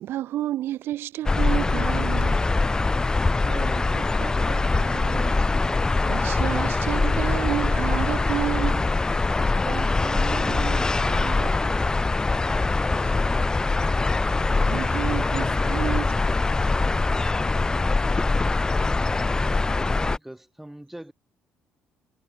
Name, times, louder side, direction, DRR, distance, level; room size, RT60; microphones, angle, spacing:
voice 1, 0.0-2.5 2.9-3.4 5.7-9.0 11.9-12.1 12.9-13.1 14.3-16.1, right 13 dB, 70° right, 0.6 m, -31 dB
sound 1, 1.3-20.2, left 3 dB, 20° left, 0.5 m, -23 dB
voice 2, 3.2-5.3 9.4-11.8, right 8 dB, 50° right, 1.0 m, -39 dB
voice 3, 19.7-21.1, right 1 dB, 5° right, 6.8 m, -42 dB
cardioid pair, 90°, 4 cm